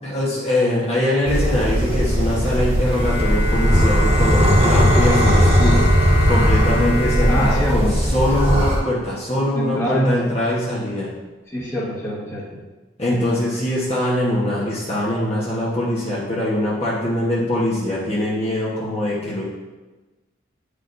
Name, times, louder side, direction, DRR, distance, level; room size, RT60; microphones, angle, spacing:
voice 1, 0.0-5.8 6.3-11.1 13.0-19.4, left 1 dB, 35° left, -7 dB, 1.1 m, -22 dB
sound 1, 1.3-8.8, equal, 35° right, 1.5 m, -18 dB
Bowed string instrument, 2.9-8.9, equal, 65° right, 1.7 m, -26 dB
voice 2, 7.3-8.0 9.5-10.1 11.5-12.6, equal, 15° left, -6 dB, 1.3 m, -24 dB
9.3 x 5.0 x 2.6 m, 1.2 s
head